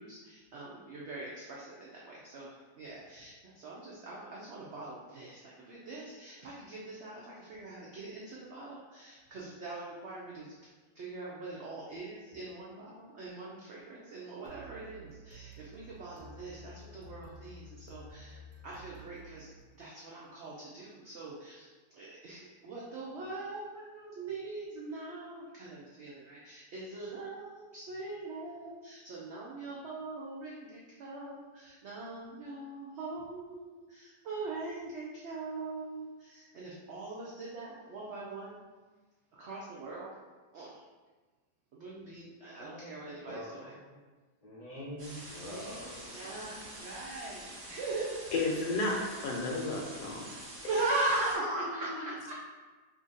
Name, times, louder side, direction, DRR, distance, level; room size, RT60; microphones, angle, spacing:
voice 1, 0.0-10.5 10.9-19.5 19.8-38.6 39.4-40.1 40.5-40.8 41.7-43.7 45.4-45.9 46.1-48.2 50.7-52.3, right 2 dB, 85° right, -5 dB, 0.6 m, -41 dB
sound 1, 14.5-20.1, right 1 dB, 65° right, 1.0 m, -52 dB
voice 2, 42.6-44.0 44.4-46.2, left 1 dB, 45° left, -7 dB, 0.7 m, -45 dB
sound 2, 45.0-51.4, right 1 dB, 40° right, 0.8 m, -47 dB
voice 3, 48.3-50.3 51.1-51.2 51.6-52.1, left 2 dB, 75° left, 0 dB, 1.1 m, -33 dB
2.8 x 2.5 x 3.9 m, 1.3 s
omnidirectional pair, 1.8 m